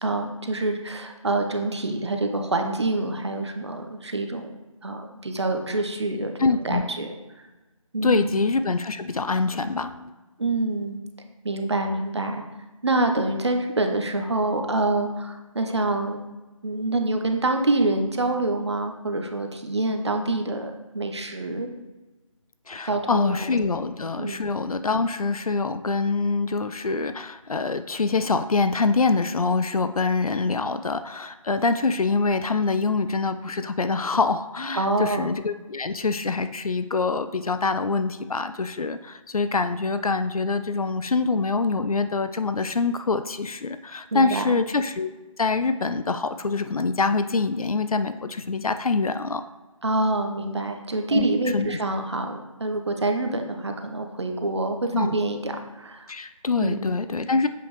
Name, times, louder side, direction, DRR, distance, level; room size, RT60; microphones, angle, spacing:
voice 1, 0.0-4.5 4.8-7.1 7.9-8.4 10.4-11.0 11.4-12.4 12.8-16.2 16.6-21.7 22.9-23.5 24.2-24.4 34.7-35.3 44.1-44.6 49.8-56.1 56.6-56.9, right 2 dB, 50° right, 5 dB, 0.8 m, -26 dB
voice 2, 6.4-6.8 8.0-10.1 22.7-45.1 45.4-49.4 51.1-51.3 51.5-51.7 54.9-55.1 56.1-57.5, left 4 dB, 85° left, 10 dB, 0.5 m, -25 dB
7.6 x 5.2 x 3.1 m, 1.1 s
figure-of-eight pair, 165°, 18 cm